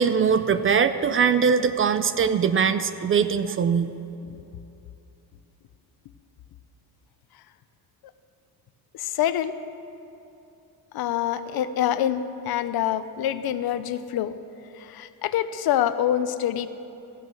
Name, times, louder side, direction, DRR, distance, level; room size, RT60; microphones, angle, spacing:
voice 1, 0.0-3.9, right 6 dB, 35° right, 12 dB, 0.4 m, -21 dB
voice 2, 8.9-9.6 10.9-14.3 14.7-16.7, left 11 dB, 70° left, 12 dB, 0.7 m, -26 dB
14.5 x 9.3 x 6.2 m, 2.8 s
cardioid pair, 155°, 39 cm